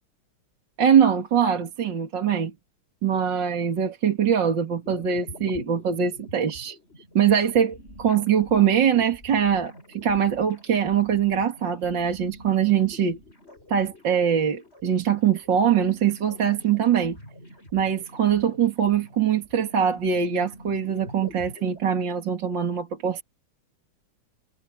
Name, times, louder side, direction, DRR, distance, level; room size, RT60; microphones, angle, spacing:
voice 1, 0.8-2.5 3.0-6.8 7.1-13.2 13.7-17.2 17.7-23.2, right 8 dB, 60° right, 2.8 m, -22 dB
sound 1, 4.8-21.8, equal, 30° left, 7.8 m, -46 dB
omnidirectional pair, 2.3 m